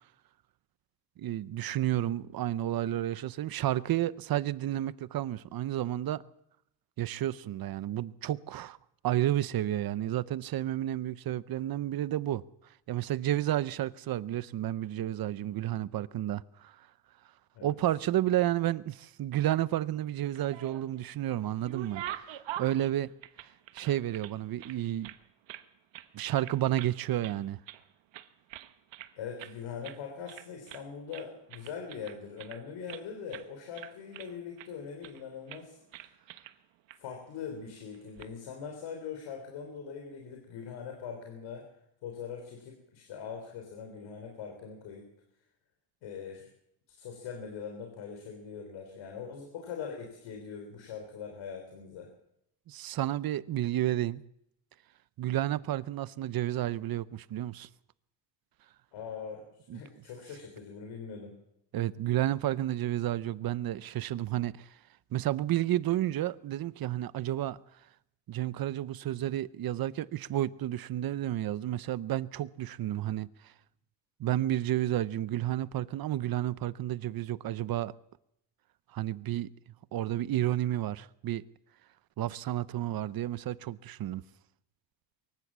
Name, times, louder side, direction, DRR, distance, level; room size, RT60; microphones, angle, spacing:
voice 1, 1.2-6.2 7.0-8.8 9.0-12.4 12.9-16.9 17.6-23.1 23.7-25.1 26.1-27.6 52.7-54.2 55.2-57.7 59.7-59.8 61.7-64.7 65.1-67.6 68.3-73.5 74.2-77.9 78.9-79.5 79.9-81.4 82.2-84.2, right 13 dB, 50° right, 0.7 m, -31 dB
sound 1, 20.2-21.0 21.4-24.3 24.6-25.7 25.9-26.1 26.4-27.0 27.2-27.8 28.1-29.1 29.4-29.6 29.8-30.0 30.3-30.9 31.1-33.0 33.3-33.5 33.7-34.7 35.0-35.2 35.5-35.6 35.9-36.5 36.9-37.0 37.9-38.3, right 13 dB, 75° right, 1.3 m, -44 dB
voice 2, 29.2-36.1 37.0-41.7 42.0-45.1 46.0-46.5 46.9-52.1 58.9-59.5 59.7-61.3, left 6 dB, 80° left, 3.6 m, -42 dB
23.5 x 15.0 x 7.4 m
cardioid pair, 135°, 45 cm